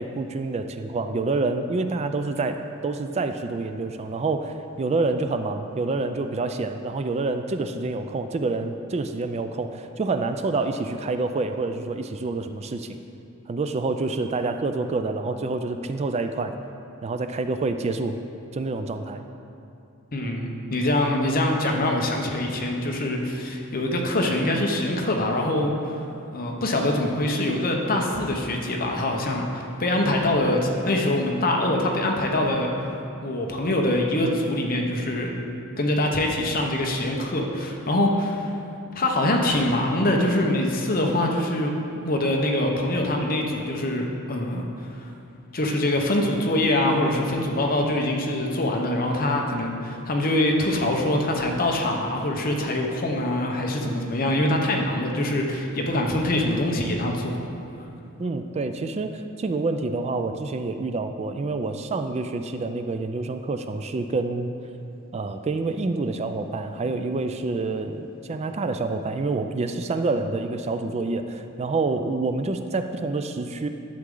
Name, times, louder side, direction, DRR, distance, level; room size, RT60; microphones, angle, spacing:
voice 1, 0.0-13.0 13.5-16.5 17.0-18.2 18.5-19.2 58.2-64.5 65.1-73.7, right 3 dB, 30° right, 7 dB, 0.3 m, -27 dB
voice 2, 20.1-25.9 26.3-32.7 33.2-35.3 35.8-38.5 38.9-41.7 42.0-45.1 45.5-57.4, left 1 dB, 40° left, 1 dB, 0.9 m, -24 dB
11.0 x 7.4 x 3.8 m, 2.7 s
head